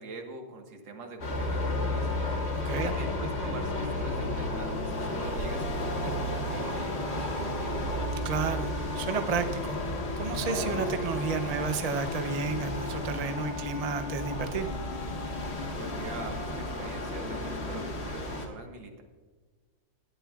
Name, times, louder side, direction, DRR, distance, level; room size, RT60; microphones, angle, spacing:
voice 1, 0.0-7.9 15.8-19.0, right 2 dB, 85° right, 3 dB, 2.3 m, -43 dB
sound 1, 1.2-18.5, left 1 dB, 35° left, 1.7 m, -33 dB
sound 2, 1.6-11.6 12.0-17.9, left 6 dB, 85° left, 1.9 m, -42 dB
voice 2, 8.2-14.7, right 5 dB, 55° right, 8 dB, 0.4 m, -32 dB
19.0 x 12.5 x 2.4 m, 1.4 s
omnidirectional pair, 2.0 m